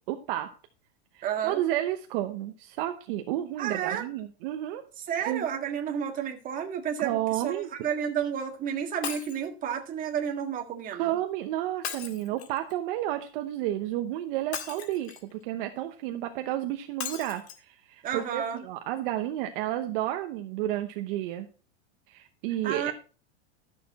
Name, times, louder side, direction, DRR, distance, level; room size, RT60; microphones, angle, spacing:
voice 1, 0.1-0.5 1.1-4.8 5.2-5.5 7.0-7.7 10.9-21.5 22.1-22.9, right 13 dB, 55° right, 6 dB, 1.0 m, -31 dB
voice 2, 1.2-1.6 3.6-4.1 5.0-11.2 18.0-18.6 22.6-22.9, right 8 dB, 25° right, 3 dB, 1.7 m, -31 dB
Shatter, 9.0-9.5 11.8-12.7 14.5-15.3 17.0-17.6 18.2-18.3 18.6-18.7, left 8 dB, 70° left, 1.9 m, -37 dB
13.0 x 6.8 x 4.2 m, 0.37 s
supercardioid pair, 150°, 33 cm